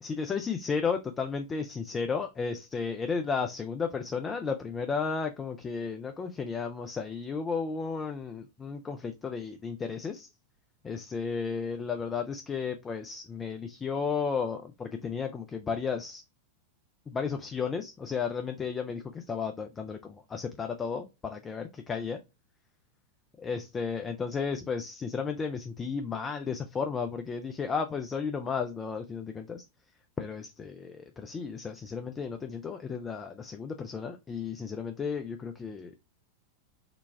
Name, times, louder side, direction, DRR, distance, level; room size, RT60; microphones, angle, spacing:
voice 1, 0.0-10.3 10.8-16.2 17.1-22.2 23.4-29.6 30.2-36.0, left 5 dB, 20° left, 0.4 m, -33 dB
4.0 x 2.2 x 3.2 m
figure-of-eight pair, 90°, 0 cm